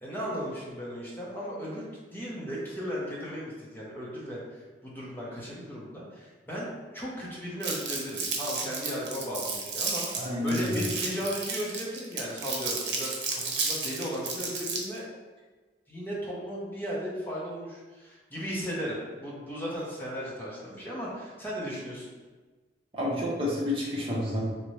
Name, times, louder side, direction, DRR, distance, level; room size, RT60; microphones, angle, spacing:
voice 1, 0.0-6.7 6.9-15.1 15.9-22.1, equal, 10° left, -6 dB, 0.9 m, -36 dB
Crumpling crinkling, 7.6-15.0, right 4 dB, 90° right, 0.7 m, -32 dB
voice 2, 10.1-10.8 22.9-24.4, left 1 dB, 30° right, -6 dB, 1.1 m, -29 dB
3.9 x 2.9 x 3.2 m, 1.3 s
head